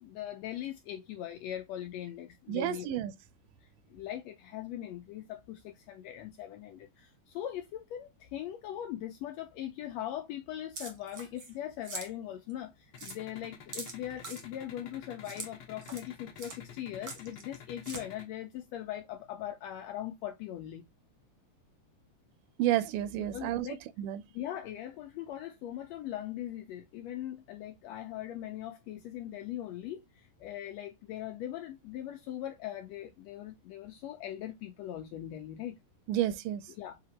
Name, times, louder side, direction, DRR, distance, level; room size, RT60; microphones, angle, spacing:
voice 1, 0.0-2.9 3.6-20.9 23.2-23.8 24.3-35.7 36.8-37.0, left 12 dB, 85° left, 1.5 m, -40 dB
voice 2, 2.5-3.1 22.6-23.7 24.0-24.2 36.1-36.6, right 13 dB, 85° right, 2.2 m, -30 dB
sound 1, 10.7-11.5 11.8-12.1 12.5-12.6 13.0-13.2 13.7-14.4 15.2-15.5 15.8-16.1 16.4-16.6 17.0-17.5 17.8-18.0, right 4 dB, 50° right, 1.2 m, -42 dB
sound 2, 12.9-18.2, left 8 dB, 55° left, 1.6 m, -49 dB
5.9 x 2.8 x 2.8 m
omnidirectional pair, 3.7 m